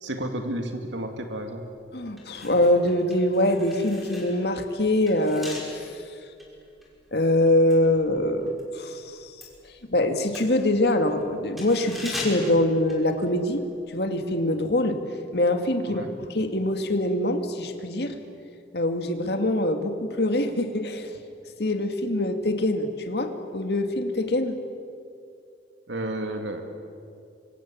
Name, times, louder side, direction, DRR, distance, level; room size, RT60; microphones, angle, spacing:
voice 1, 0.0-1.6 15.9-16.1 25.9-26.6, right 1 dB, 90° right, 5 dB, 2.4 m, -31 dB
voice 2, 1.9-5.8 7.1-9.3 9.9-15.0 15.3-18.2 18.7-21.1 21.6-24.6, left 1 dB, 60° left, 6 dB, 2.4 m, -24 dB
sound 1, 2.1-8.7 9.0-13.6 13.9-14.1, left 1 dB, ahead, 5.8 m, -41 dB
26.5 x 24.5 x 8.8 m, 2.4 s
head